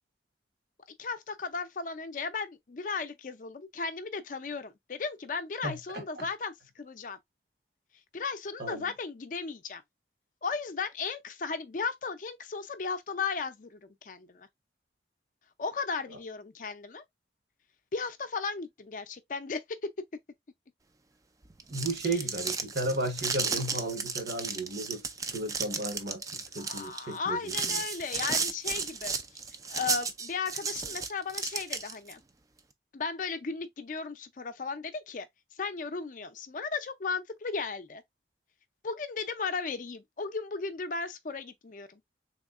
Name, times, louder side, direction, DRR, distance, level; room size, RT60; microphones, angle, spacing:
voice 1, 1.0-7.2 8.1-9.8 10.4-14.5 15.6-17.0 17.9-19.6 22.0-22.2 26.6-29.4 29.7-32.2 32.9-35.3 35.6-38.0 38.8-42.0, left 5 dB, 45° left, 0.5 m, -35 dB
voice 2, 5.6-6.3 8.6-8.9 21.7-25.0 25.3-27.8, right 2 dB, 65° right, 1.2 m, -34 dB
sound 1, 21.5-32.1, right 5 dB, 20° right, 0.3 m, -33 dB
3.5 x 3.1 x 2.4 m
head